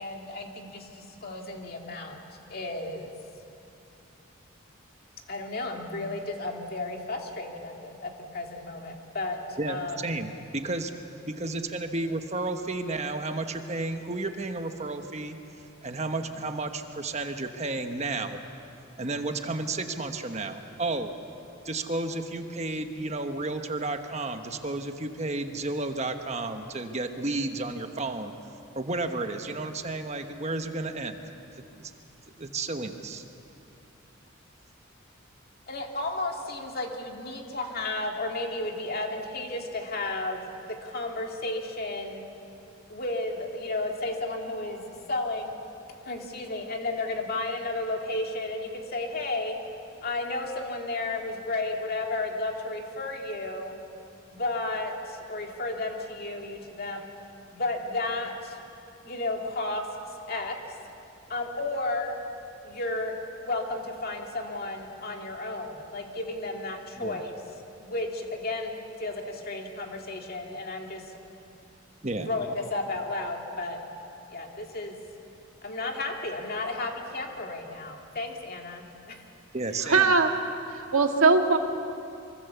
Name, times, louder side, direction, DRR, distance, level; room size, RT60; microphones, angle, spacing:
voice 1, 0.0-2.2 2.5-3.2 5.3-10.2 11.5-11.6 35.7-40.4 40.8-42.3 42.9-45.6 46.0-49.6 50.0-53.8 54.3-57.1 57.5-58.6 59.0-59.9 60.3-60.8 61.3-62.2 62.6-63.1 63.4-67.3 67.8-71.0 72.3-73.8 74.3-75.0 75.6-79.2, left 2 dB, 45° left, 2 dB, 2.4 m, -33 dB
voice 2, 9.6-10.9 11.3-15.4 15.8-18.4 19.0-21.1 21.6-28.3 28.7-31.2 32.4-33.2 67.0-67.2 72.0-72.3 79.5-80.1, right 2 dB, 30° right, 6 dB, 1.2 m, -32 dB
voice 3, 79.9-80.3 80.7-81.6, right 4 dB, 80° right, 4 dB, 1.9 m, -20 dB
25.0 x 23.5 x 7.0 m, 2.7 s
head